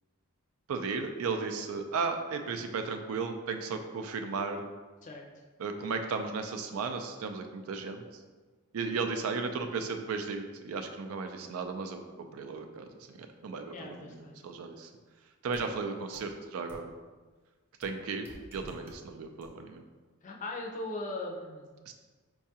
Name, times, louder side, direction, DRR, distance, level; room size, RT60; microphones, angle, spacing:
voice 1, 0.7-4.7 5.6-8.0 8.7-12.9 13.2-14.9 15.4-16.9 17.8-18.3 18.5-19.8 21.9-22.0, right 4 dB, 80° right, 6 dB, 0.4 m, -35 dB
voice 2, 13.7-14.4 20.2-21.7, left 2 dB, 35° left, 0 dB, 0.5 m, -39 dB
sound 1, 15.5-15.6 16.1-16.2 16.7-16.8 17.8-17.9 18.3-19.0 19.4-19.5, equal, 10° right, 0.5 m, -48 dB
4.6 x 2.3 x 2.7 m, 1.4 s
head